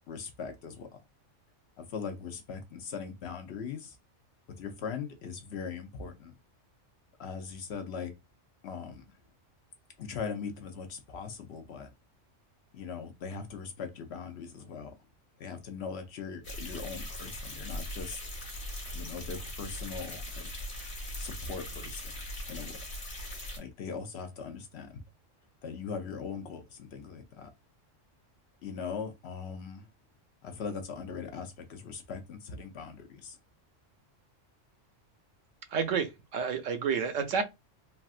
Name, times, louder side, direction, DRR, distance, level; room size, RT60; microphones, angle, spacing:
voice 1, 0.1-1.0 1.8-4.0 4.6-6.3 7.2-8.1 8.6-9.0 10.0-11.9 12.7-15.0 15.4-18.2 18.9-20.5 21.2-22.1 22.5-22.8 23.6-25.0 25.6-27.5 28.6-29.9 30.4-33.4, left 6 dB, 65° left, 0.7 m, -40 dB
sound 1, 16.4-23.6, left 1 dB, 50° left, 1.1 m, -40 dB
voice 2, 35.7-37.4, right 6 dB, 80° right, 1.0 m, -30 dB
3.3 x 2.4 x 2.4 m
omnidirectional pair, 1.3 m